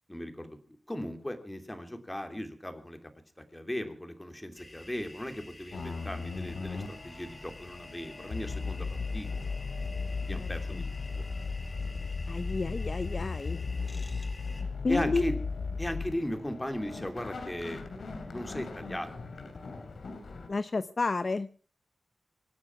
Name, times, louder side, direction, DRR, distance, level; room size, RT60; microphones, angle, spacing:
voice 1, 0.1-0.6 0.9-3.1 3.5-8.9 9.1-9.3 10.2-11.2 14.9-15.4 15.8-17.8 18.3-19.1 19.9-20.1, left 1 dB, 15° left, 7 dB, 2.9 m, -37 dB
sound 1, 4.6-14.6, left 2 dB, 30° left, 4.0 m, -50 dB
sound 2, 5.7-20.5, left 4 dB, 75° left, 3.0 m, -37 dB
voice 2, 10.3-10.8 12.3-13.6 14.8-15.2 20.5-21.5, left 3 dB, 50° left, 13 dB, 0.7 m, -31 dB
25.0 x 9.7 x 5.9 m, 0.40 s
wide cardioid pair, 85°, 0 cm